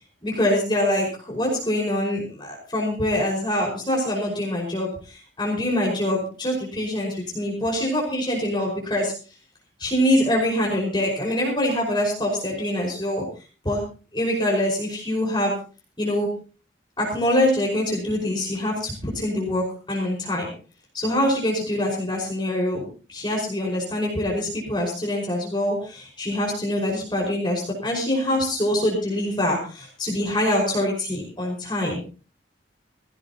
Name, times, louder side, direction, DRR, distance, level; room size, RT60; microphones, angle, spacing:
voice 1, 0.2-9.1 9.8-13.2 13.6-13.8 14.1-15.5 16.0-16.3 17.0-20.5 20.9-22.8 23.1-32.0, left 1 dB, 25° left, -2 dB, 5.4 m, -24 dB
19.5 x 17.0 x 3.0 m, 0.37 s
head